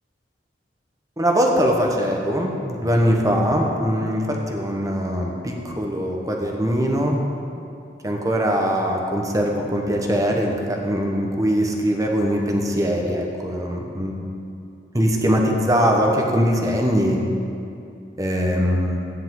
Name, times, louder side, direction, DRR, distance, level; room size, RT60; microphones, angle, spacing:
voice 1, 1.2-7.2 8.0-14.2 14.9-17.2 18.2-19.0, equal, 20° right, 1 dB, 1.2 m, -21 dB
14.0 x 10.0 x 3.9 m, 2.5 s
head